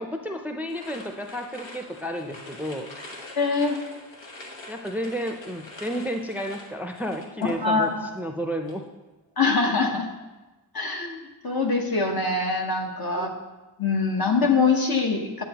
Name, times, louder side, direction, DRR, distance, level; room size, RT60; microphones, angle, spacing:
voice 1, 0.0-2.9 4.7-8.8 13.2-13.3, equal, 5° right, 3 dB, 0.5 m, -32 dB
sound 1, 0.7-8.1 8.4-8.8, left 2 dB, 85° left, 1.3 m, -43 dB
voice 2, 3.4-3.8 7.6-8.0 9.4-10.1 10.7-11.2 11.4-13.3 13.8-15.4, left 4 dB, 55° left, 2 dB, 1.2 m, -23 dB
9.0 x 8.0 x 2.9 m, 1.1 s
wide cardioid pair, 65°, 44 cm